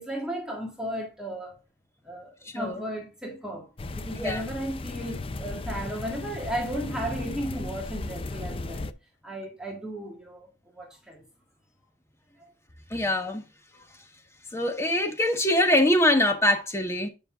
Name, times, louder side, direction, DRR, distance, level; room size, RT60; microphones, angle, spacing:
voice 1, 0.0-1.6 2.0-8.9 9.2-11.2 12.4-12.5, right 1 dB, 5° right, 1.8 m, -35 dB
sound 1, 3.8-8.9, left 2 dB, 30° left, 0.4 m, -36 dB
voice 2, 12.9-13.4 14.5-17.1, left 1 dB, 15° left, 1.2 m, -23 dB
9.7 x 5.5 x 2.4 m
head